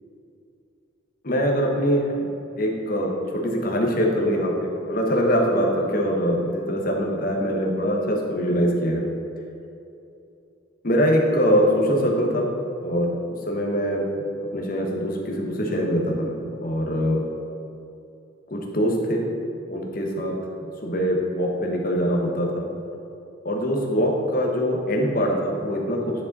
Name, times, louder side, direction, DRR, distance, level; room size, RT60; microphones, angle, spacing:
voice 1, 1.2-2.1 2.6-9.0 10.8-12.5 12.8-14.0 14.5-17.2 18.5-19.2 19.7-20.4 20.6-22.7 23.4-26.2, equal, 45° left, 0 dB, 1.1 m, -23 dB
10.0 x 5.1 x 4.1 m, 2.8 s
head